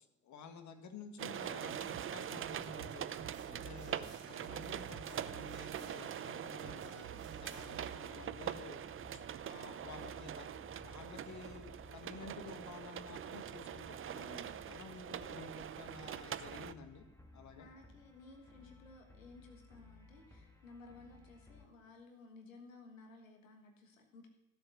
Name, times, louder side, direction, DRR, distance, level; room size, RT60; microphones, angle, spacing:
voice 1, 0.2-3.1 3.5-7.1 7.4-8.8 9.1-14.3 14.7-17.1 17.3-17.7, left 5 dB, 45° left, 7 dB, 1.7 m, -52 dB
sound 1, 1.2-16.7, right 9 dB, 35° right, 0.7 m, -44 dB
sound 2, 1.7-8.0, right 5 dB, 90° right, 1.6 m, -53 dB
sound 3, 7.6-21.7, left 1 dB, 10° left, 1.9 m, -59 dB
voice 2, 14.2-14.8 17.6-24.3, left 3 dB, 90° left, 4 dB, 1.5 m, -57 dB
15.0 x 7.9 x 6.2 m, 1.0 s
hypercardioid pair, 60°, 38 cm